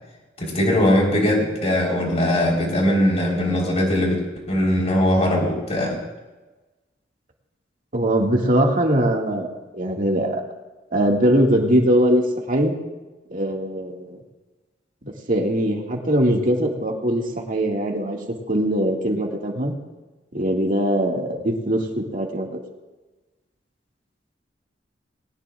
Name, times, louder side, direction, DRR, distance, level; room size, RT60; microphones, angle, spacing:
voice 1, 0.4-4.2 4.5-6.0, left 1 dB, 35° left, -1 dB, 4.2 m, -20 dB
voice 2, 7.9-10.4 10.9-12.7 13.3-14.2 15.0-18.2 18.5-19.7 20.3-22.6, right 1 dB, 50° right, 0 dB, 2.1 m, -21 dB
21.0 x 18.5 x 2.5 m, 1.2 s
head